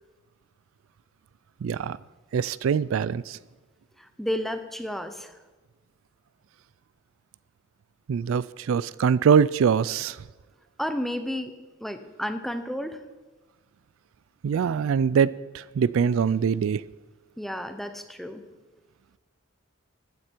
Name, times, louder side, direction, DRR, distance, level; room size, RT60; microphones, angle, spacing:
voice 1, 1.6-2.0 2.3-3.4 8.1-10.2 14.4-15.3 15.5-16.8, right 7 dB, 75° right, 0.3 m, -23 dB
voice 2, 4.0-5.4 10.8-11.5 11.8-13.0 17.4-18.4, equal, ahead, 0.8 m, -32 dB
14.5 x 9.5 x 4.5 m
head